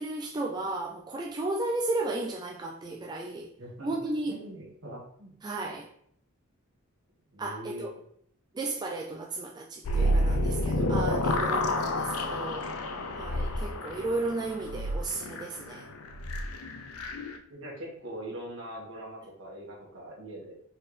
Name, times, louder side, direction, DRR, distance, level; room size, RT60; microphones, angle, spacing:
voice 1, 0.0-3.5 3.8-4.4 5.4-5.9 7.4-7.9 8.5-12.7 13.1-15.9, right 2 dB, 20° right, 0.3 m, -34 dB
voice 2, 3.6-3.9 4.3-5.3 7.3-7.9 13.8-14.0 17.5-20.5, right 1 dB, 65° right, 1.7 m, -42 dB
sound 1, 9.8-17.4, left 1 dB, 90° left, 0.5 m, -29 dB
4.5 x 3.6 x 3.2 m
head